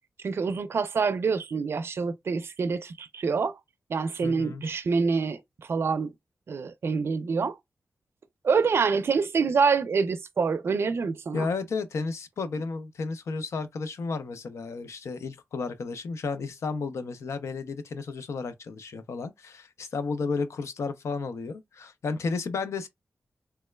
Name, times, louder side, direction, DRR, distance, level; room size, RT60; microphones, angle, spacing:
voice 1, 0.2-3.6 3.9-6.1 6.5-7.6 8.4-11.5, right 5 dB, 60° right, 0.4 m, -26 dB
voice 2, 4.2-4.6 11.3-22.9, left 4 dB, 85° left, 0.6 m, -33 dB
3.4 x 3.0 x 2.2 m
wide cardioid pair, 90°, 5 cm